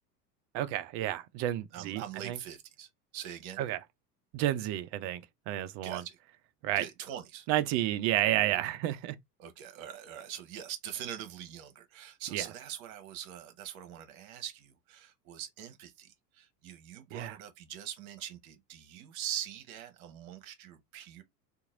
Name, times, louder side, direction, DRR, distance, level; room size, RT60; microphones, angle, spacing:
voice 1, 0.5-2.4 3.6-3.8 4.3-6.0 6.6-6.9 7.5-9.2 12.3-12.4 17.1-17.4, right 13 dB, 35° right, 0.4 m, -31 dB
voice 2, 1.7-3.6 5.8-6.2 6.8-7.5 9.4-21.2, right 10 dB, 55° right, 1.0 m, -43 dB
2.9 x 2.5 x 3.7 m
figure-of-eight pair, 75°, 49 cm